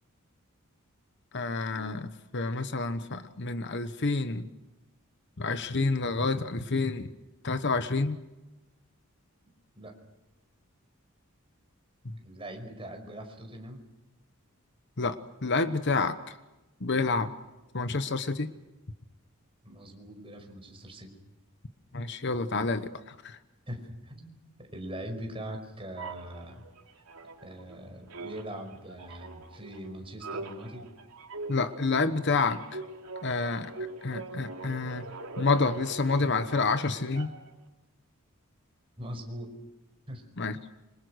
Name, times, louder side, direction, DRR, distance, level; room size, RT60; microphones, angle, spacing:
voice 1, 1.3-4.4 5.4-7.1 7.4-8.2 15.0-16.2 16.8-17.3 17.7-18.5 21.9-23.4 31.5-32.8 33.2-33.7 34.0-35.0 35.4-37.3 40.4-40.6, left 3 dB, 55° left, 11 dB, 1.1 m, -28 dB
voice 2, 12.2-13.8 19.6-21.1 23.7-26.6 27.4-30.9 39.0-39.5 40.1-40.2, equal, 25° right, 3 dB, 5.4 m, -42 dB
sound 1, 26.0-27.8 28.1-37.6, right 3 dB, 80° right, 3.1 m, -42 dB
27.0 x 26.0 x 6.4 m, 1.0 s
head